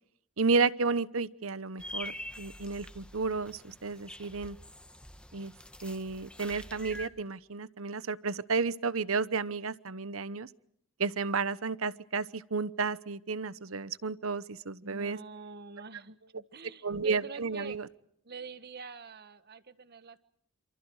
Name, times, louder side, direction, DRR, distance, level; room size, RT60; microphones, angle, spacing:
voice 1, 0.4-4.6 5.3-5.5 5.8-10.5 11.0-15.2 16.8-17.9, right 4 dB, 85° right, 17 dB, 1.0 m, -32 dB
sound 1, 1.8-7.1, left 1 dB, 5° left, 1.8 m, -45 dB
voice 2, 14.8-17.8 18.2-20.2, right 3 dB, 50° right, 12 dB, 1.5 m, -45 dB
28.5 x 27.0 x 4.8 m, 0.73 s
head